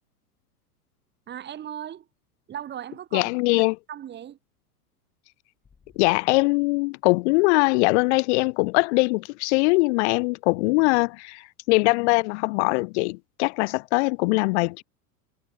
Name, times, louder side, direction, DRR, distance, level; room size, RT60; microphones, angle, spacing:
voice 1, 1.3-2.0 2.5-4.4, right 10 dB, 20° right, 1.1 m, -38 dB
voice 2, 3.1-3.8 6.0-14.8, left 27 dB, 45° left, 0.8 m, -22 dB
sound 1, 5.6-6.2, left 5 dB, 15° left, 6.5 m, -58 dB
hypercardioid pair, 95°, 47 cm